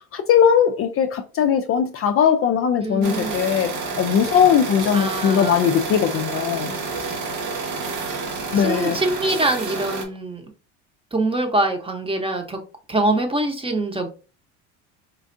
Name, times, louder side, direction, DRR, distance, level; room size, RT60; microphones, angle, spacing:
voice 1, 0.1-3.7 4.0-6.7 8.5-9.0, left 8 dB, 40° left, 0.4 m, -19 dB
voice 2, 2.8-3.4 4.9-5.7 6.9-7.2 8.5-10.5 11.1-12.6 12.9-14.1, right 2 dB, 15° right, 0.9 m, -24 dB
sound 1, 3.0-10.0, right 4 dB, 75° right, 1.1 m, -29 dB
4.4 x 2.3 x 2.6 m
supercardioid pair, 80°, 36 cm